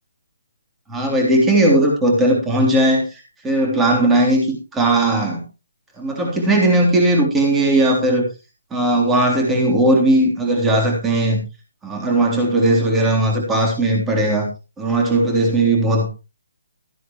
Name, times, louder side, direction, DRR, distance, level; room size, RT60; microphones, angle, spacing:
voice 1, 0.9-5.4 6.0-8.3 8.7-11.4 11.8-14.5 14.8-16.1, right 1 dB, 10° right, 0 dB, 3.4 m, -17 dB
14.0 x 11.0 x 3.1 m, 0.29 s
hypercardioid pair, 155°, 0 cm